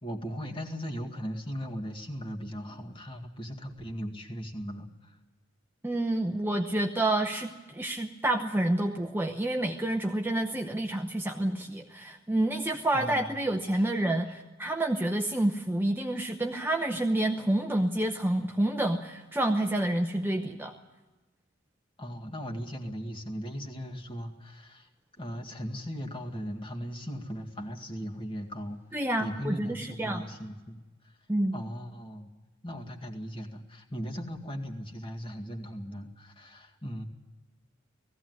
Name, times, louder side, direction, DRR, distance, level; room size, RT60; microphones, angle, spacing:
voice 1, 0.0-5.2 12.9-13.3 13.8-13.9 22.0-24.9 25.2-31.2 31.5-32.3 32.6-37.0, equal, 25° left, 3 dB, 2.0 m, -38 dB
voice 2, 5.8-20.7 28.9-30.2 31.3-31.6, right 1 dB, 10° right, 3 dB, 0.8 m, -28 dB
18.5 x 15.5 x 9.4 m, 1.2 s
head